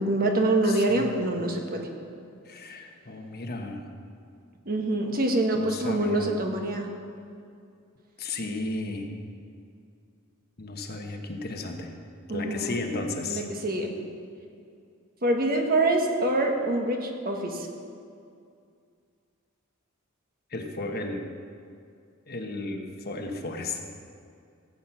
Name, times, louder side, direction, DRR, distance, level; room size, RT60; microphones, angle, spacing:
voice 1, 0.0-1.8 4.7-6.9 12.3-12.8 13.3-13.9 15.2-17.7, right 2 dB, 45° right, 2 dB, 1.5 m, -25 dB
voice 2, 0.6-1.3 2.4-3.9 5.5-6.3 8.2-9.1 10.6-11.9 12.3-13.5 20.5-21.3 22.3-23.8, left 2 dB, 45° left, 4 dB, 1.2 m, -34 dB
16.5 x 8.6 x 5.9 m, 2.4 s
head